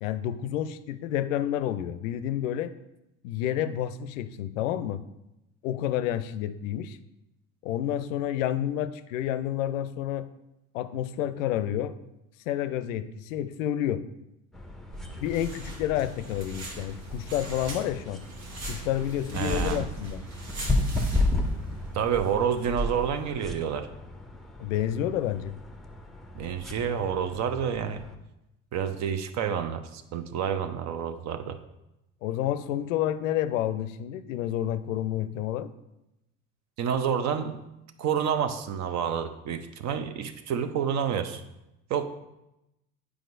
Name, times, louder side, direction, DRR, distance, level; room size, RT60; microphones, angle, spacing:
voice 1, 0.0-2.7 3.2-5.0 5.6-7.0 7.6-10.3 10.7-12.0 12.5-14.0 15.2-18.2 18.7-20.2 24.6-25.6 32.2-35.7, left 11 dB, 70° left, 12 dB, 0.5 m, -29 dB
sound 1, 14.5-28.2, left 2 dB, ahead, 0.6 m, -34 dB
sound 2, 14.9-23.5, right 1 dB, 60° right, 1.6 m, -39 dB
voice 2, 19.3-19.9 21.9-23.9 26.3-28.0 28.7-31.6 36.8-37.6 38.0-41.4 41.9-42.0, right 8 dB, 40° right, 10 dB, 0.6 m, -29 dB
9.1 x 4.8 x 2.5 m, 0.91 s
figure-of-eight pair, 60°, 41 cm